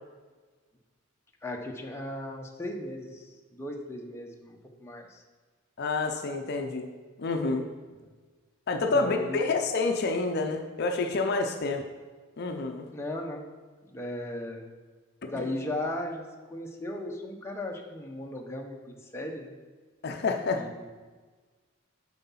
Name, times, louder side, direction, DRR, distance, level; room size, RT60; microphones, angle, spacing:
voice 1, 1.4-3.3 3.5-5.2 8.9-9.6 12.9-13.5 13.8-14.6 15.2-16.2 16.5-19.5 20.5-20.9, left 1 dB, 15° left, 1 dB, 0.8 m, -36 dB
voice 2, 5.8-6.9 7.2-7.7 8.7-11.9 12.4-12.9 15.2-15.5 20.0-20.6, left 3 dB, 50° left, 5 dB, 0.5 m, -28 dB
7.7 x 4.6 x 5.6 m, 1.4 s
head